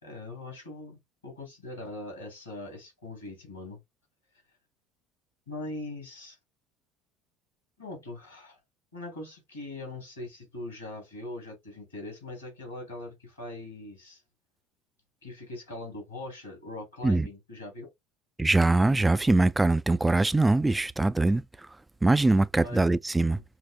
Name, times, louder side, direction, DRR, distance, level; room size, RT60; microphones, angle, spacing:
voice 1, 0.0-3.8 5.5-6.4 7.8-8.6 8.9-14.2 15.2-17.9 22.6-22.8 23.3-23.4, left 2 dB, 85° left, 2.5 m, -41 dB
voice 2, 18.4-21.4 22.0-23.4, right 2 dB, 10° right, 0.3 m, -22 dB
5.7 x 2.1 x 2.4 m
figure-of-eight pair, 65°, 0 cm